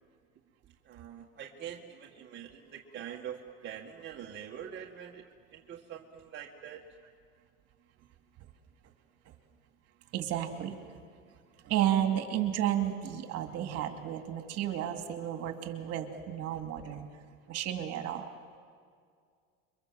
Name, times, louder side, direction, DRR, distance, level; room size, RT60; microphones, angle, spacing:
voice 1, 0.8-5.2 5.5-6.8, right 9 dB, 35° right, -1 dB, 1.9 m, -44 dB
voice 2, 10.1-10.8 11.6-17.1 17.5-18.3, right 11 dB, 55° right, 5 dB, 2.7 m, -32 dB
29.0 x 23.5 x 7.7 m, 2.1 s
supercardioid pair, 120°, 30 cm